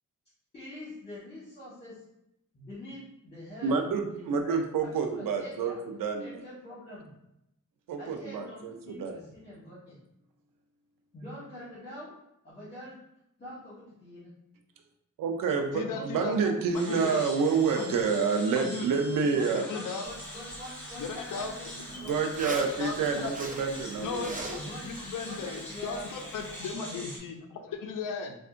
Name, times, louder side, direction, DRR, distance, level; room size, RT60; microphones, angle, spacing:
voice 1, 0.5-2.0 2.5-3.8 4.1-4.6 4.8-5.8 6.2-7.1 8.0-10.0 11.1-12.1 12.4-12.9 13.4-14.3 15.8-16.8 19.2-22.2 24.6-24.8 25.2-26.1 26.7-27.1, equal, 30° left, -11 dB, 1.2 m, -44 dB
voice 2, 3.6-5.7 6.0-6.4 7.9-9.2 15.2-19.7 22.0-24.4, right 5 dB, 85° right, 5 dB, 0.5 m, -28 dB
voice 3, 15.7-16.4 16.7-17.2 17.8-18.0 18.6-18.9 19.5-20.1 21.0-21.5 21.9-22.1 22.5-23.3 24.0-24.5 24.8-28.4, left 5 dB, 75° left, 5 dB, 0.5 m, -36 dB
sound 1, 16.7-27.2, equal, 5° left, 0.9 m, -44 dB
Zipper (clothing), 20.0-26.7, right 2 dB, 25° right, 0.4 m, -44 dB
3.5 x 2.3 x 2.4 m, 0.82 s
wide cardioid pair, 125°, 32 cm